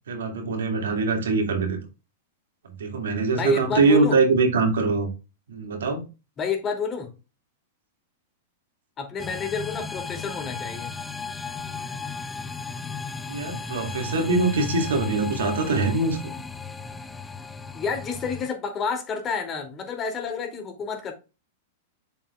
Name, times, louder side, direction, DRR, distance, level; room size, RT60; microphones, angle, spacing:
voice 1, 0.1-1.8 2.8-5.1 5.5-6.1 13.3-16.3, right 3 dB, 80° right, 2.3 m, -23 dB
voice 2, 3.3-4.2 6.4-7.1 9.0-10.9 17.7-21.1, left 4 dB, 30° left, 2.6 m, -29 dB
sound 1, 9.2-18.5, left 5 dB, 10° left, 0.6 m, -35 dB
7.5 x 6.8 x 2.4 m
hypercardioid pair, 105°, 0 cm